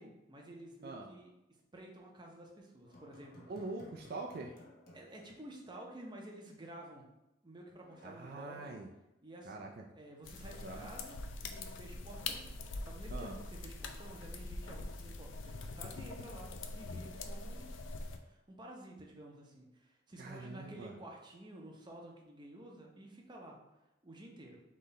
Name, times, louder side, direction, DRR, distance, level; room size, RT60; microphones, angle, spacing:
voice 1, 0.0-1.3 1.7-3.4 4.9-7.0 7.4-8.7 9.2-12.5 12.8-17.9 18.2-23.6 24.0-24.6, right 1 dB, 25° right, 0 dB, 0.7 m, -51 dB
sound 1, 2.8-6.2 6.5-6.6 7.8-9.2 12.1-13.6, left 1 dB, 50° left, 1.0 m, -60 dB
voice 2, 3.5-4.5 8.0-8.9 9.5-9.8 10.6-10.9 13.1-13.4 20.2-20.9, right 3 dB, 55° right, 1 dB, 0.4 m, -44 dB
sound 2, 10.2-18.2, left 3 dB, 75° left, 0.4 m, -44 dB
4.0 x 3.2 x 4.0 m, 0.94 s
head